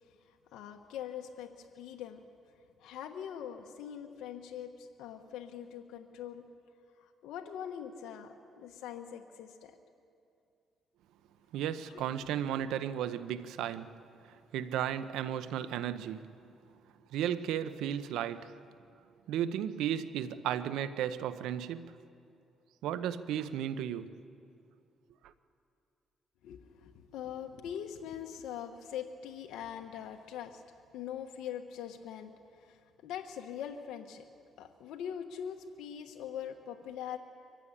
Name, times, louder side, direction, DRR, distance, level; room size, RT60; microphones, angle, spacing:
voice 1, 0.3-2.2 2.8-6.5 7.0-9.8 12.6-12.7 26.4-30.6 30.9-34.2 34.6-37.2, left 9 dB, 90° left, 4 dB, 1.2 m, -42 dB
voice 2, 11.5-14.0 14.2-16.3 17.1-18.5 19.3-22.0 22.8-24.1 25.2-25.3, right 10 dB, 90° right, 13 dB, 0.8 m, -34 dB
23.5 x 15.5 x 10.0 m, 2.5 s
cardioid pair, 90°, 0 cm